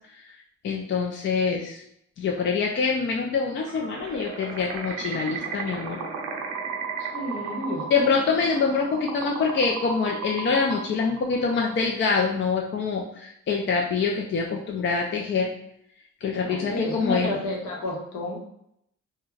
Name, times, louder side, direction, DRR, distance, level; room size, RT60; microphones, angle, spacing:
voice 1, 0.6-1.8 2.2-6.0 7.9-15.5 16.2-17.3, left 5 dB, 40° left, 0 dB, 0.4 m, -25 dB
sound 1, 3.6-12.1, right 5 dB, 85° right, 0.6 m, -35 dB
voice 2, 7.0-8.1 16.4-18.4, left 1 dB, 75° left, -2 dB, 1.0 m, -31 dB
2.4 x 2.2 x 3.1 m, 0.74 s
cardioid pair, 90°, 30 cm